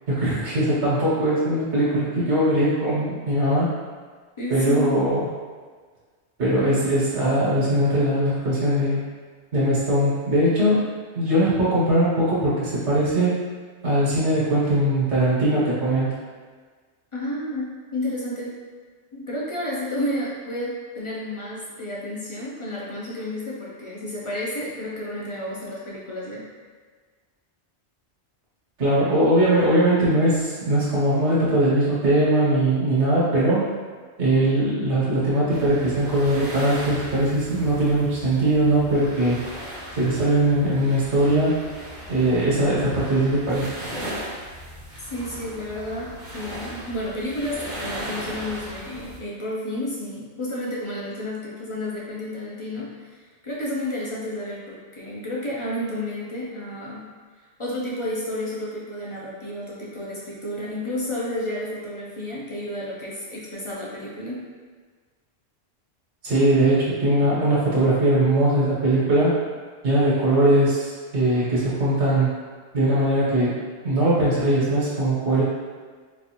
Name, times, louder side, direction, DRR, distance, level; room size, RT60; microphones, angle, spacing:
voice 1, 0.1-3.8 4.5-5.2 6.4-9.0 9.5-10.9 11.1-13.4 13.8-16.1 28.8-33.6 34.2-39.4 39.9-41.7 42.1-43.7 66.2-69.4 69.8-72.3 72.7-75.4, right 1 dB, 80° right, -8 dB, 1.4 m, -20 dB
voice 2, 4.4-5.0 17.1-18.5 19.1-26.5 45.0-57.1 57.6-64.4, left 1 dB, 35° left, -6 dB, 0.5 m, -31 dB
sound 1, 35.5-49.2, equal, 50° right, 0.8 m, -37 dB
4.0 x 2.5 x 2.9 m, 1.5 s
omnidirectional pair, 1.2 m